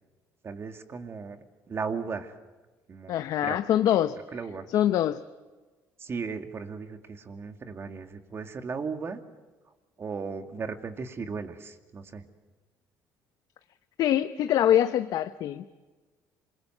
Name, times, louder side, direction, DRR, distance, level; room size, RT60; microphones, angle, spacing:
voice 1, 0.4-1.4 1.7-2.4 2.9-3.6 4.3-4.7 6.0-9.2 10.0-12.2, right 5 dB, 40° right, 7 dB, 2.4 m, -36 dB
voice 2, 3.1-4.2 4.7-5.2 14.0-15.9, left 11 dB, 70° left, 10 dB, 0.8 m, -24 dB
27.0 x 22.0 x 8.0 m, 1.3 s
cardioid pair, 90°, 7 cm